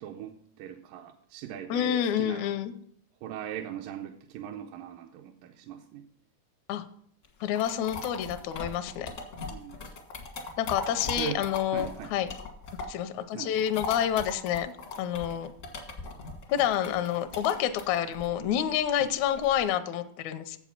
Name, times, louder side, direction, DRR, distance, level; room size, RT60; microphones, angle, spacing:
voice 1, 0.0-2.5 3.2-6.1 9.5-9.8 11.1-12.2 13.3-13.6 19.0-19.2, right 10 dB, 80° right, 3 dB, 2.2 m, -40 dB
voice 2, 1.7-2.7 6.7-6.8 7.4-9.1 10.6-12.3 12.9-15.5 16.5-20.6, left 10 dB, 80° left, 9 dB, 1.7 m, -28 dB
sound 1, 7.2-13.1 13.4-19.7, left 3 dB, 65° left, 0.7 m, -39 dB
7.6 x 7.1 x 5.7 m, 0.64 s
omnidirectional pair, 4.0 m